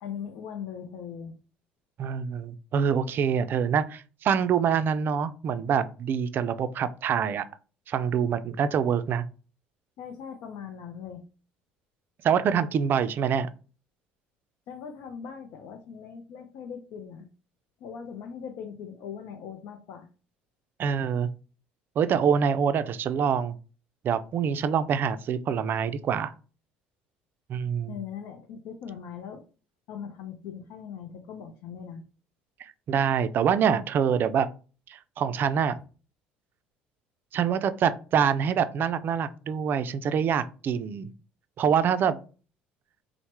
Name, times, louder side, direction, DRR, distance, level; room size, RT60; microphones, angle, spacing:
voice 1, 0.0-1.3 10.0-11.3 14.7-17.3 17.8-20.1 27.9-29.4 29.9-32.0, left 7 dB, 65° left, 0.5 m, -40 dB
voice 2, 2.0-7.5 7.9-9.2 12.2-13.5 20.8-21.3 22.0-23.6 24.0-26.3 27.5-28.0 32.6-34.5 34.9-35.7 37.3-41.1 41.6-42.2, right 7 dB, 50° right, 0.3 m, -25 dB
3.2 x 2.0 x 2.9 m
hypercardioid pair, 75°, 5 cm